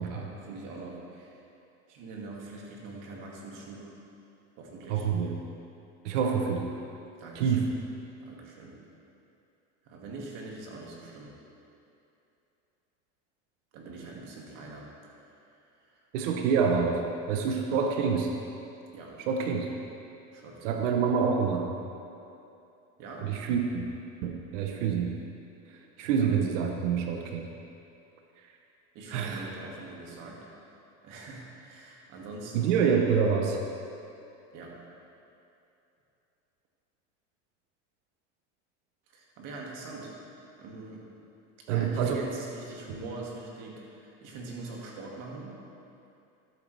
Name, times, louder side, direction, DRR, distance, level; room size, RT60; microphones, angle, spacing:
voice 1, 0.0-1.4 1.9-3.9 4.6-5.1 7.2-7.7 8.2-8.8 9.8-11.3 13.7-14.9 15.3-15.6 15.9-16.0 17.7-17.8 18.9-19.1 20.3-20.8 23.0-23.3 26.2-26.3 28.9-30.4 31.0-32.9 34.5-34.7 39.1-40.1 40.6-41.0 41.7-45.6, right 3 dB, 60° right, -2 dB, 2.3 m, -43 dB
voice 2, 4.9-5.4 6.0-6.7 7.3-7.7 16.1-18.3 19.2-19.8 20.6-21.7 23.2-25.2 25.7-27.5 28.4-28.5 29.1-29.5 32.5-33.6 41.7-42.2, right 6 dB, 85° right, 2 dB, 1.0 m, -27 dB
13.0 x 8.4 x 3.4 m, 2.8 s
supercardioid pair, 115°, 36 cm